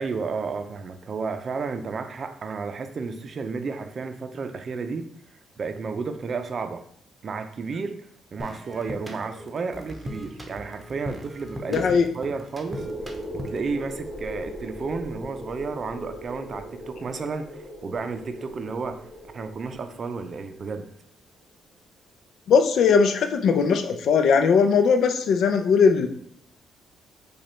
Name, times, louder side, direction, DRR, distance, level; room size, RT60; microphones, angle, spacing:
voice 1, 0.0-5.1 5.6-6.8 7.2-8.0 8.3-12.9 13.3-19.1 19.3-20.9, right 4 dB, 45° right, 8 dB, 0.5 m, -32 dB
sound 1, 8.4-13.7, equal, 15° right, 0.7 m, -40 dB
voice 2, 11.7-12.1 22.5-26.1, left 6 dB, 70° left, 6 dB, 0.5 m, -19 dB
sound 2, 12.7-20.5, equal, 10° left, 1.2 m, -39 dB
4.9 x 2.3 x 4.3 m, 0.64 s
cardioid pair, 90°, 0 cm